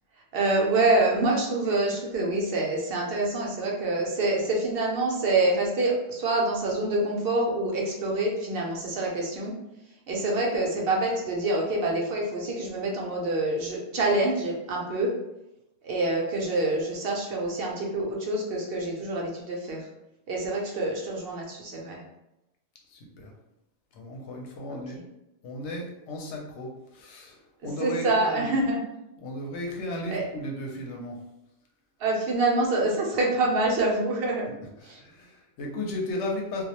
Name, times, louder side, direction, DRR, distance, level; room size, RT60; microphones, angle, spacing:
voice 1, 0.3-9.5 10.1-15.1 15.8-19.8 20.3-22.0 27.8-28.8 30.1-30.2 32.0-34.5 34.9-35.0, right 2 dB, 60° right, -1 dB, 0.7 m, -26 dB
voice 2, 22.9-23.3 23.9-25.0 25.4-27.4 27.6-28.5 29.2-31.2 34.8-36.7, left 1 dB, 70° left, 0 dB, 0.8 m, -35 dB
2.2 x 2.0 x 2.8 m, 0.90 s
omnidirectional pair, 1.3 m